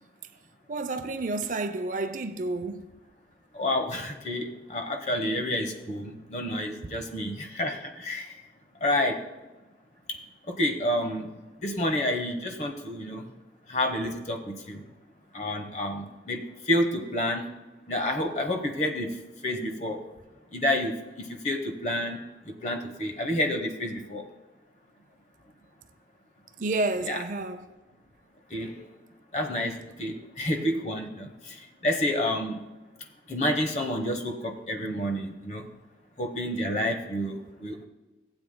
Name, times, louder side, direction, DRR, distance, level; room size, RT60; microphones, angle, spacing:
voice 1, 0.7-2.9 7.0-7.1 26.6-27.7, right 2 dB, 45° right, 0.5 m, -30 dB
voice 2, 3.5-8.3 8.8-9.2 10.6-11.3 11.6-13.2 13.7-14.8 15.3-17.4 17.9-19.2 19.4-20.0 20.5-22.2 22.5-24.2 27.0-27.2 28.5-28.8 29.3-31.6 31.8-32.6 33.3-35.7 36.2-37.9, left 1 dB, 40° left, 1.0 m, -29 dB
16.0 x 8.0 x 2.2 m
head